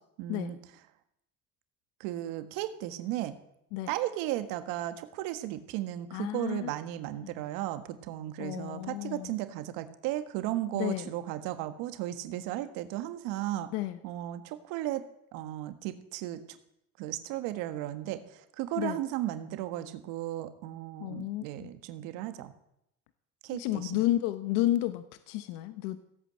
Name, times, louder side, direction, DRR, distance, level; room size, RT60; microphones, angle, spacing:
voice 1, 0.2-0.6 2.0-3.3 3.9-13.7 14.0-15.0 15.3-16.4 17.0-18.2 18.6-22.5 23.4-24.0, right 14 dB, 75° right, 10 dB, 1.6 m, -35 dB
voice 2, 6.1-6.7 7.1-7.3 8.4-9.3 10.7-11.1 13.7-14.0 18.8-19.0 21.0-21.7 23.5-26.0, left 15 dB, 80° left, 12 dB, 1.0 m, -32 dB
16.5 x 8.7 x 7.6 m, 0.78 s
supercardioid pair, 105°, 33 cm